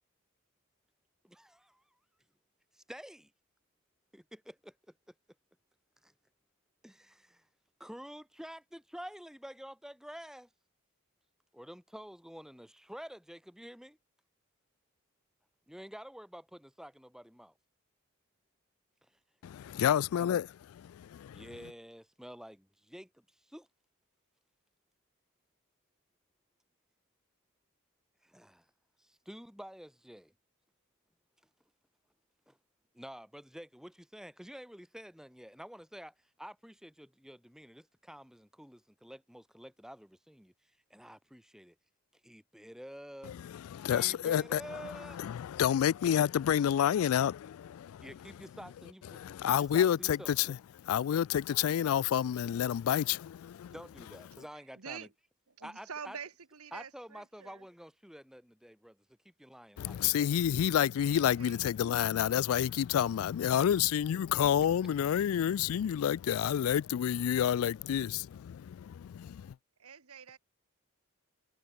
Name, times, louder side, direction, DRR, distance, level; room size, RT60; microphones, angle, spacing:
voice 1, 1.2-1.8 2.9-3.3 4.1-5.1 6.0-6.1 6.8-7.5 7.8-10.5 11.5-14.0 15.7-17.5 19.0-19.2 19.8-20.0 21.3-23.7 28.2-28.7 29.0-30.3 32.5-32.6 32.9-40.5 40.9-41.8 42.2-43.4 43.9-45.2 48.0-50.5 53.7-55.1 55.6-56.2 56.7-60.3, equal, ahead, 3.1 m, -49 dB
voice 2, 19.4-21.4 43.3-44.6 45.2-48.0 49.1-50.6 50.9-53.7 59.8-69.5, left 9 dB, 75° left, 0.3 m, -29 dB
voice 3, 54.8-55.1 55.5-57.6 61.1-61.6 69.8-70.4, right 6 dB, 85° right, 1.3 m, -46 dB
head